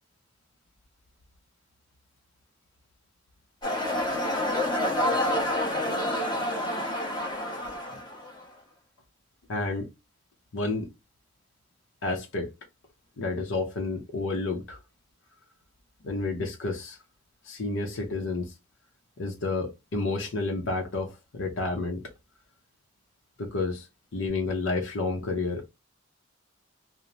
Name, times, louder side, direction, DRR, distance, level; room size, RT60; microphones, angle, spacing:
pura kehen cockfight, 3.6-8.4, left 1 dB, 25° left, 1.0 m, -28 dB
voice 1, 9.5-9.9 10.5-10.9 12.0-12.5 13.2-14.8 16.0-17.0 17.4-18.5 19.2-22.0 23.4-23.9 24.1-25.7, left 3 dB, 85° left, 0.6 m, -30 dB
3.0 x 2.0 x 2.6 m
head